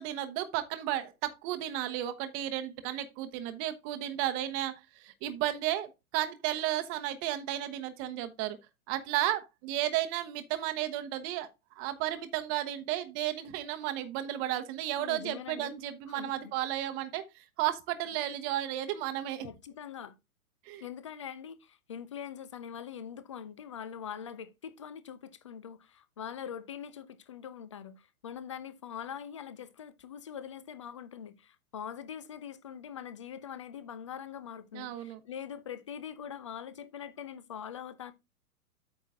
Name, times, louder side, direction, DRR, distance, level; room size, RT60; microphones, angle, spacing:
voice 1, 0.0-8.6 8.9-11.5 11.8-19.5 20.6-20.8 34.7-35.2, right 13 dB, 30° right, 0.9 m, -33 dB
voice 2, 14.9-15.7 16.1-16.5 19.4-20.2 20.8-38.1, left 8 dB, 25° left, 0.3 m, -43 dB
8.6 x 5.7 x 3.6 m
figure-of-eight pair, 115°, 45 cm